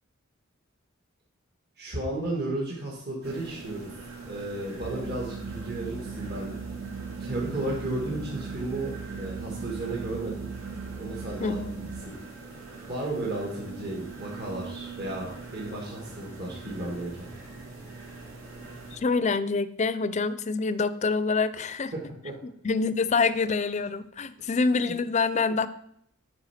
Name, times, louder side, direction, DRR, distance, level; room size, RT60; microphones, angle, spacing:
voice 1, 1.8-6.5 7.2-10.5 10.9-12.2 12.5-12.6 12.9-17.3 21.9-22.3 24.7-24.9, right 2 dB, 50° right, -3 dB, 1.7 m, -34 dB
sound 1, 3.2-19.0, right 4 dB, 85° right, 2.2 m, -42 dB
sound 2, 4.8-12.0, right 4 dB, 35° right, 0.5 m, -39 dB
voice 2, 18.9-21.9 22.4-25.7, left 4 dB, 35° left, 14 dB, 0.4 m, -26 dB
9.8 x 4.5 x 5.8 m, 0.72 s
head